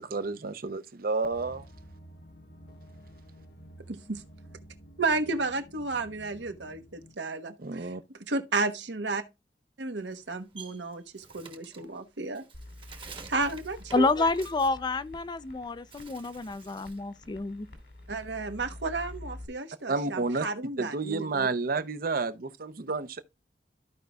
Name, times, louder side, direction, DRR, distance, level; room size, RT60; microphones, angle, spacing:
voice 1, 0.0-1.7 7.6-8.0 19.9-20.4 20.8-23.2, right 3 dB, 55° right, 0.6 m, -30 dB
sound 1, 1.3-7.1, equal, 65° left, 0.9 m, -51 dB
voice 2, 3.9-4.2 5.0-7.9 8.3-9.2 9.8-12.4 13.0-14.3 18.1-21.5, right 3 dB, 85° right, 1.1 m, -32 dB
Bird, 10.0-15.5 15.8-17.1 17.4-19.2, right 4 dB, 30° right, 1.1 m, -50 dB
sound 2, 12.5-19.5, left 1 dB, 80° left, 2.4 m, -48 dB
voice 3, 13.9-17.7, left 3 dB, 25° left, 0.4 m, -28 dB
14.0 x 5.1 x 2.3 m
head